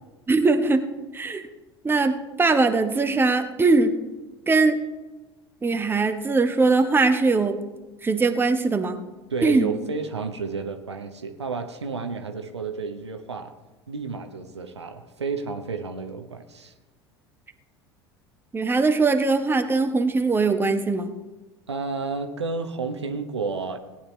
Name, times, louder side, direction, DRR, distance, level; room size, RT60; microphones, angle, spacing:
voice 1, 0.3-0.8 1.1-1.4 1.8-4.0 4.5-4.8 5.6-7.6 8.0-9.0 9.4-9.7 18.5-21.1, right 3 dB, 15° right, 7 dB, 1.2 m, -21 dB
voice 2, 9.3-13.5 13.9-16.7 21.7-23.8, right 4 dB, 80° right, 6 dB, 1.0 m, -31 dB
18.0 x 9.9 x 3.2 m, 1.2 s
figure-of-eight pair, 70°, 14 cm